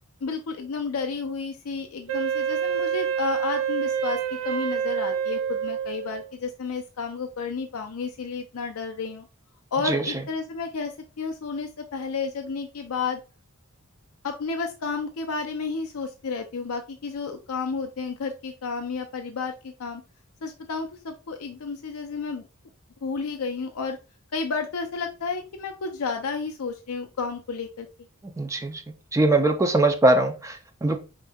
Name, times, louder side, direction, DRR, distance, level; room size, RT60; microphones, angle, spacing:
voice 1, 0.2-4.2 4.4-9.3 9.7-13.2 14.2-20.0 20.4-22.5 23.0-24.0 24.3-27.9, left 4 dB, 85° left, 0.5 m, -31 dB
Wind instrument woodwind instrument, 2.1-6.3, right 8 dB, 75° right, 0.7 m, -27 dB
voice 2, 28.4-28.8 29.1-31.0, right 2 dB, 15° right, 0.4 m, -21 dB
5.1 x 3.7 x 2.2 m
head